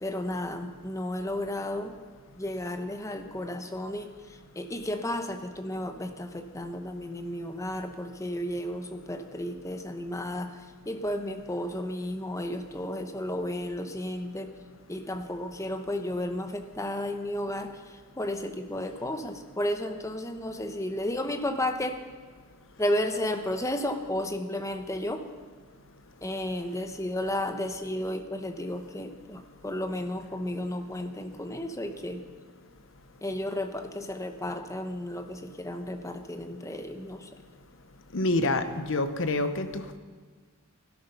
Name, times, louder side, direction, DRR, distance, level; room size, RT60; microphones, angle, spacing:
voice 1, 0.0-2.0 2.4-4.1 4.6-10.5 10.9-14.5 14.9-22.0 22.8-25.2 26.2-32.2 33.2-37.3, left 1 dB, 15° left, 6 dB, 0.9 m, -33 dB
voice 2, 38.1-40.0, left 2 dB, 60° left, 9 dB, 1.0 m, -27 dB
16.5 x 12.5 x 5.5 m, 1.5 s
head